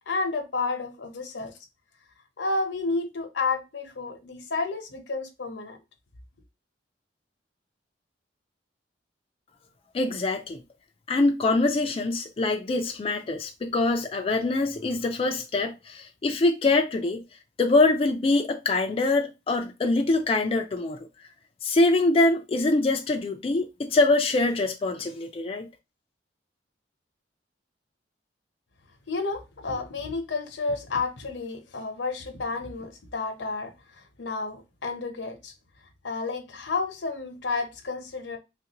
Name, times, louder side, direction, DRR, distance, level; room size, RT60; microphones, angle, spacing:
voice 1, 0.1-1.5 2.4-5.8 29.1-35.5 36.0-38.4, left 3 dB, 80° left, 0.8 m, -31 dB
voice 2, 9.9-10.6 11.1-17.2 17.6-21.1 21.6-25.7, left 2 dB, 30° left, 0.3 m, -24 dB
3.3 x 2.5 x 2.9 m
head